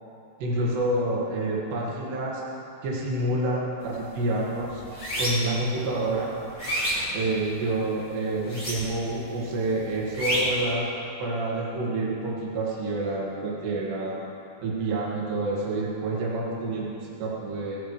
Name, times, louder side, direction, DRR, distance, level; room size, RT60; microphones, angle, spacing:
voice 1, 0.4-2.4 2.8-4.8 5.2-6.3 7.1-10.9 11.2-14.2 14.6-17.8, right 2 dB, 85° right, -5 dB, 4.2 m, -28 dB
sound 1, 3.8-4.1 4.5-5.6 6.1-7.8 8.4-9.2 9.4-10.7, equal, 10° left, 4.0 m, -29 dB
20.0 x 16.0 x 3.3 m, 2.7 s
omnidirectional pair, 4.7 m